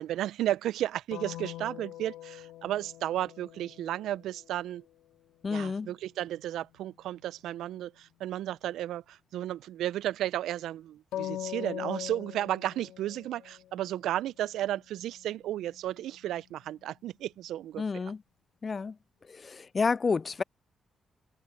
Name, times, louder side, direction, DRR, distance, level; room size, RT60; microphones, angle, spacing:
voice 1, 0.0-4.8 5.5-17.8, right 13 dB, 75° right, 0.6 m, -33 dB
sound 1, 1.1-4.9 11.1-13.9 14.4-16.7, left 13 dB, 75° left, 2.0 m, -42 dB
voice 2, 5.4-5.9 17.8-18.2 18.6-19.0 19.3-20.4, left 4 dB, 45° left, 0.4 m, -30 dB
open air
hypercardioid pair, 40°, 0 cm